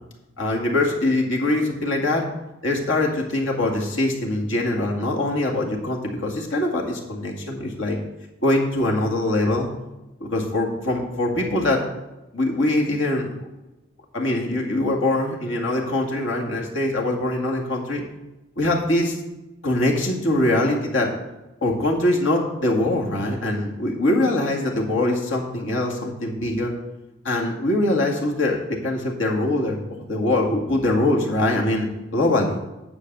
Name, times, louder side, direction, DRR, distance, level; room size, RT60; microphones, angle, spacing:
voice 1, 0.4-2.3 2.6-8.0 8.4-9.7 10.2-11.9 12.3-13.3 14.1-18.0 18.6-19.2 19.6-21.1 21.6-26.7 27.2-31.9 32.1-32.6, left 1 dB, 85° left, 0 dB, 2.2 m, -23 dB
9.9 x 4.8 x 8.0 m, 1.0 s
head